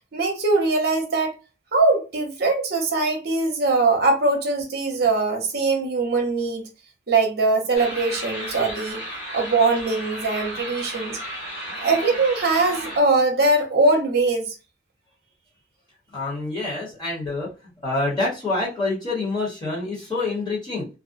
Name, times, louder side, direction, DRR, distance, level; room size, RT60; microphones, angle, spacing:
voice 1, 0.1-1.3 1.7-6.7 7.1-9.0 9.3-11.2 11.8-14.6, right 3 dB, 55° right, 0.7 m, -21 dB
sound 1, 7.7-13.0, equal, 55° left, 1.1 m, -34 dB
voice 2, 16.1-17.5 17.8-20.9, left 2 dB, 25° left, 0.9 m, -26 dB
2.4 x 2.0 x 2.5 m
head